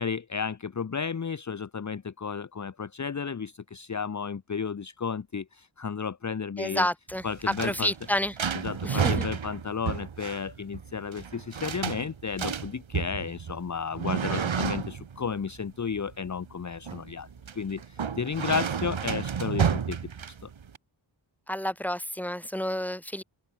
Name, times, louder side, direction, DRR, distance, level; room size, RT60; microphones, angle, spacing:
voice 1, 0.0-6.9 7.2-7.9 8.6-17.3 17.6-20.0 20.4-20.5, left 6 dB, 35° left, 1.1 m, -33 dB
voice 2, 6.6-8.3 8.8-9.2 21.5-23.2, equal, 5° left, 3.1 m, -30 dB
sound 1, 7.1-20.8, right 7 dB, 75° right, 5.1 m, -32 dB
open air
wide cardioid pair, 110°, 48 cm